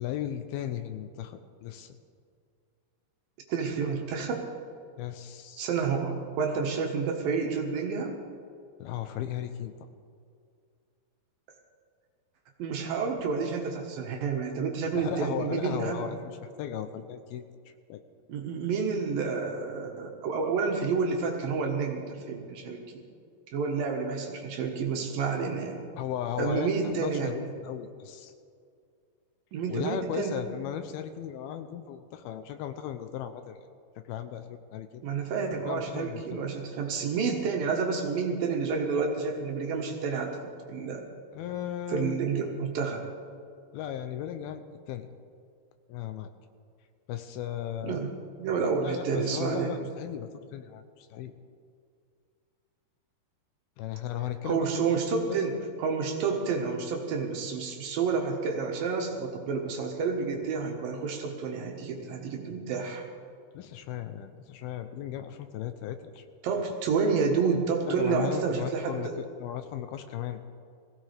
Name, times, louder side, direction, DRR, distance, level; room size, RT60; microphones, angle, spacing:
voice 1, 0.0-2.0 5.0-5.7 8.8-9.7 14.9-17.5 17.9-18.0 26.0-28.3 29.7-33.6 34.1-35.0 35.7-36.4 41.3-42.2 43.7-45.1 45.9-46.3 47.1-48.0 48.8-51.3 53.8-55.4 63.5-66.2 67.9-70.4, left 10 dB, 80° left, 8 dB, 2.4 m, -36 dB
voice 2, 3.5-4.4 5.6-8.2 12.6-16.1 18.3-23.0 23.5-25.8 26.4-27.3 29.5-30.5 35.0-41.0 41.9-43.0 47.8-48.1 48.4-49.8 54.4-63.0 66.4-69.1, right 5 dB, 70° right, 1 dB, 2.9 m, -29 dB
21.0 x 16.5 x 3.4 m, 2.3 s
omnidirectional pair, 4.6 m